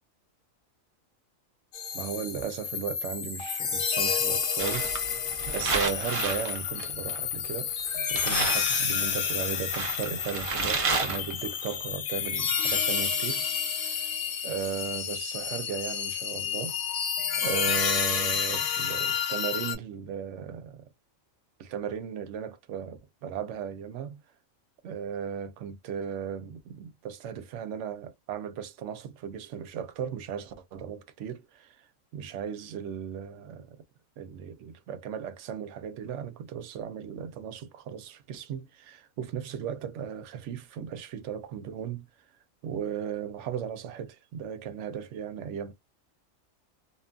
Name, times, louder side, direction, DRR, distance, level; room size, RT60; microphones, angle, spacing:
sound 1, 1.7-19.8, left 7 dB, 85° left, 1.2 m, -30 dB
voice 1, 1.9-13.4 13.7-14.1 14.4-16.8 17.4-20.9 21.6-24.2 24.8-33.8 34.2-42.1 42.6-45.7, right 8 dB, 70° right, 0.9 m, -36 dB
sound 2, 4.6-7.5 7.8-7.9 8.2-11.7, right 4 dB, 50° right, 0.4 m, -31 dB
2.8 x 2.3 x 2.4 m
omnidirectional pair, 1.4 m